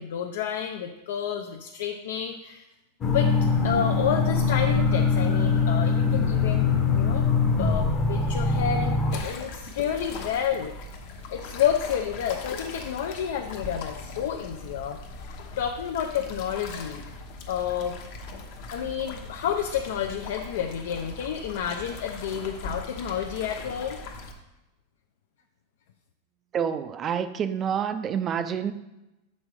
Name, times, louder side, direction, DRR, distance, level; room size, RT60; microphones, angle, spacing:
voice 1, 0.0-2.6 3.1-3.3 3.6-7.3 7.6-10.7 11.3-17.0 17.5-18.0 18.7-24.0, left 8 dB, 70° left, 3 dB, 0.6 m, -30 dB
sound 1, 3.0-9.2, left 4 dB, 20° left, 0.8 m, -23 dB
sound 2, 9.1-24.3, left 3 dB, 45° left, 1.0 m, -40 dB
voice 2, 26.5-28.7, right 8 dB, 20° right, 11 dB, 0.4 m, -28 dB
7.5 x 5.4 x 4.7 m, 0.97 s
supercardioid pair, 170°, 0 cm